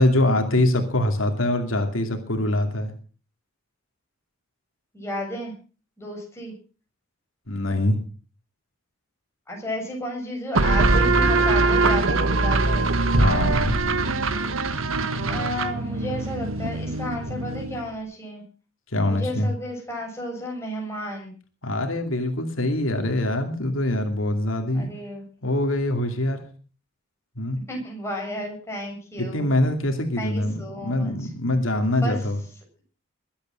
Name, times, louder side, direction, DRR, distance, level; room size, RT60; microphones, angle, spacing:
voice 1, 0.0-2.9 7.5-8.0 11.2-11.4 13.1-13.8 18.9-19.5 21.6-24.9 25.4-26.4 27.4-27.6 29.2-32.4, left 1 dB, 80° left, 5 dB, 2.6 m, -24 dB
voice 2, 4.9-5.5 6.0-6.5 9.5-12.9 15.3-18.4 19.0-21.3 24.7-25.2 27.7-29.5 30.2-31.3 32.0-32.2, equal, 15° left, 0 dB, 7.3 m, -33 dB
sound 1, 10.5-17.9, right 3 dB, 85° right, 1.5 m, -22 dB
22.0 x 8.7 x 6.4 m, 0.40 s
head